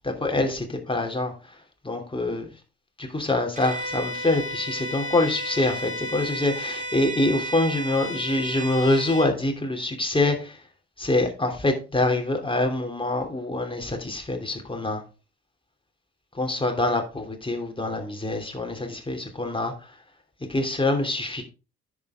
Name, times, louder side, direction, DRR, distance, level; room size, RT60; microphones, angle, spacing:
voice 1, 0.0-1.3 1.8-2.5 3.0-10.5 11.0-15.0 16.4-19.7 20.5-21.4, left 2 dB, 15° left, 3 dB, 3.1 m, -25 dB
Bowed string instrument, 3.5-9.3, equal, 20° right, 3.6 m, -33 dB
10.5 x 7.4 x 3.7 m, 0.32 s
hypercardioid pair, 45°, 34 cm